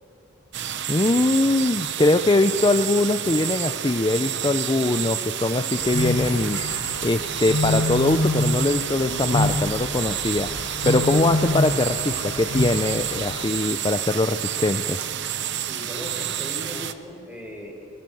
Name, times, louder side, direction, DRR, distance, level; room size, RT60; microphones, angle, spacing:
sound 1, 0.5-16.9, right 10 dB, 55° right, 0.8 m, -29 dB
voice 1, 0.9-6.6 7.0-10.5 10.9-15.0, left 2 dB, 20° left, 8 dB, 0.5 m, -22 dB
sound 2, 5.8-13.4, left 2 dB, 80° left, 1.5 m, -27 dB
voice 2, 15.6-17.8, left 1 dB, 5° right, 0 dB, 4.6 m, -38 dB
23.5 x 21.0 x 7.8 m, 2.8 s
head